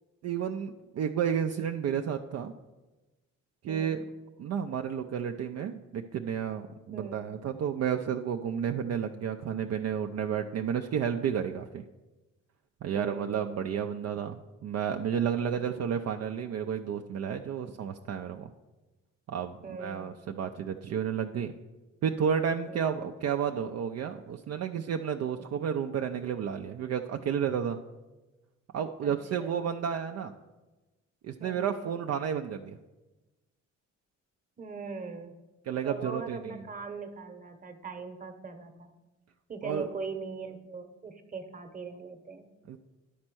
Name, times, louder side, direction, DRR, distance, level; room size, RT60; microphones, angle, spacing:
voice 1, 0.2-2.5 3.6-4.0 4.4-11.8 12.8-18.5 19.3-21.5 22.0-27.8 28.7-30.3 31.2-32.8 35.7-36.6 39.6-39.9 42.7-42.8, right 8 dB, 55° right, 5 dB, 0.5 m, -31 dB
voice 2, 3.7-4.0 6.9-7.2 12.9-13.3 19.6-20.1 22.7-23.0 25.4-25.5 29.0-29.1 29.4-29.7 31.4-31.7 34.6-35.4 35.8-38.9 39.5-42.5, right 4 dB, 25° right, 6 dB, 1.0 m, -41 dB
10.0 x 4.3 x 6.1 m, 1.1 s
cardioid pair, 90°, 30 cm